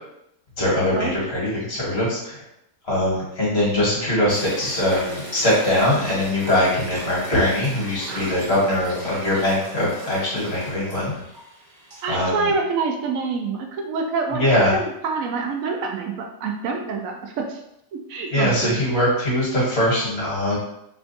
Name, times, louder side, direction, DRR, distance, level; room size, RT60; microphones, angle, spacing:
voice 1, 0.6-2.4 2.8-11.1 12.1-12.5 14.3-14.7 18.3-20.6, left 1 dB, 40° left, -7 dB, 1.7 m, -22 dB
sound 1, 4.3-12.3, right 1 dB, 35° right, 1.2 m, -38 dB
voice 2, 12.0-14.5 14.7-17.6 17.9-18.8, right 4 dB, 70° right, 2 dB, 0.9 m, -26 dB
3.4 x 2.3 x 3.9 m, 0.80 s
omnidirectional pair, 1.6 m